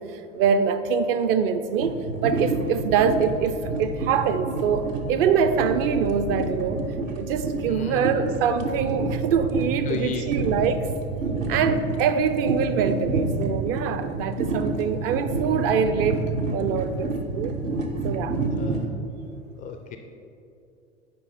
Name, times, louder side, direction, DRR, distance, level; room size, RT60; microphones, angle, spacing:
voice 1, 0.3-6.9 7.1-10.9 11.5-17.5 18.0-18.4, right 6 dB, 45° right, 10 dB, 0.5 m, -24 dB
sound 1, 1.8-18.9, right 3 dB, 75° right, 0.9 m, -29 dB
voice 2, 7.6-8.2 9.9-10.2 18.4-18.9 19.6-20.0, left 7 dB, 20° left, 6 dB, 0.3 m, -34 dB
8.4 x 5.2 x 4.2 m, 2.6 s
figure-of-eight pair, 80°, 39 cm